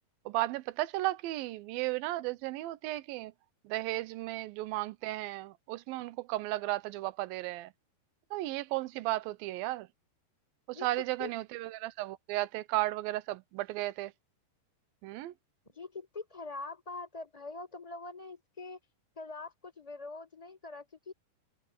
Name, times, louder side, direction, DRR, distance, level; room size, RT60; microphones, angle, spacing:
voice 1, 0.3-3.3 3.7-7.7 8.3-9.9 10.8-14.1 15.0-15.3, right 17 dB, 75° right, 2.3 m, -34 dB
voice 2, 15.7-18.8 19.1-21.1, left 3 dB, 10° left, 4.8 m, -43 dB
omnidirectional pair, 4.8 m